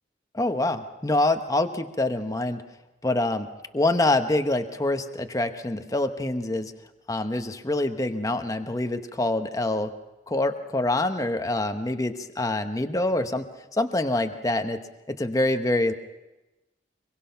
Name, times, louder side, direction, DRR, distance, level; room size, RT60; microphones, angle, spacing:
voice 1, 0.3-2.6 3.0-3.5 3.7-6.7 7.1-9.9 10.3-14.8 15.1-15.9, left 2 dB, 20° left, 7 dB, 0.9 m, -25 dB
24.5 x 23.0 x 5.7 m, 1.0 s
head